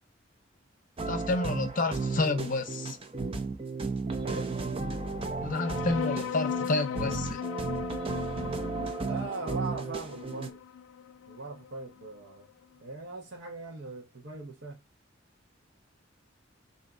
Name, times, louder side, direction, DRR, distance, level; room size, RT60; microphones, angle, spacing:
sound 1, 1.0-10.5, right 3 dB, 30° right, 0.6 m, -34 dB
voice 1, 1.1-3.0 5.4-7.5, left 3 dB, 45° left, 0.7 m, -30 dB
voice 2, 4.2-4.6 9.0-10.6 11.3-12.5 12.8-14.8, right 3 dB, 65° right, 1.0 m, -40 dB
sound 2, 5.5-12.4, left 8 dB, 90° left, 0.3 m, -38 dB
3.6 x 2.7 x 3.8 m
head